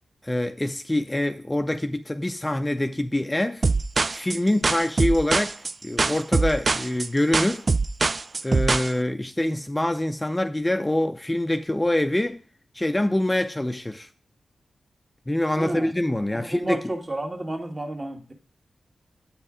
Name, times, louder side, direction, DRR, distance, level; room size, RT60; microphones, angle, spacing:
voice 1, 0.2-3.7 4.1-5.5 5.8-7.7 8.4-12.4 12.7-14.1 15.3-16.8, left 1 dB, 20° left, 0.5 m, -25 dB
sound 1, 3.6-8.9, right 3 dB, 50° right, 0.3 m, -23 dB
voice 2, 15.6-15.9 16.3-18.3, right 1 dB, 30° right, 1.8 m, -31 dB
8.5 x 5.4 x 5.0 m
cardioid pair, 50°, 0 cm